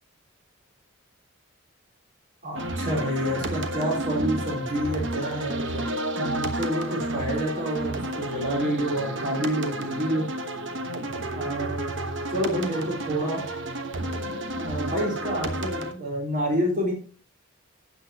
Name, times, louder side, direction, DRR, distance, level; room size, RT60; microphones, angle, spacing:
voice 1, 2.4-5.8 6.1-10.3 11.4-11.8 12.3-13.4 14.5-16.9, equal, 40° right, -1 dB, 3.7 m, -28 dB
sound 1, 2.6-15.9, right 1 dB, 60° right, 1.2 m, -31 dB
12.5 x 8.5 x 2.9 m, 0.38 s
head